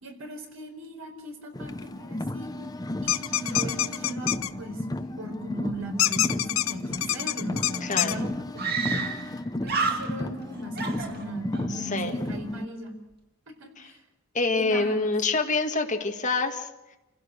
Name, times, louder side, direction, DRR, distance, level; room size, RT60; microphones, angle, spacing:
voice 1, 0.0-2.5 3.0-4.8 5.2-9.1 9.6-12.9 13.6-14.0 14.6-15.1, right 1 dB, 75° right, 3 dB, 4.4 m, -38 dB
Car, 1.5-12.6, left 1 dB, 20° left, 0.7 m, -34 dB
sound 1, 3.1-4.5 6.0-8.1, left 13 dB, 70° left, 0.7 m, -26 dB
Screaming, 7.5-7.6 7.8-7.9 8.6-9.4 9.6-10.4 10.8-11.7, right 4 dB, 50° right, 2.4 m, -30 dB
voice 2, 7.8-8.2 11.7-12.1 13.8-13.9 14.3-16.7, left 3 dB, 35° left, 3 dB, 2.0 m, -26 dB
27.5 x 16.5 x 6.6 m, 1.0 s
head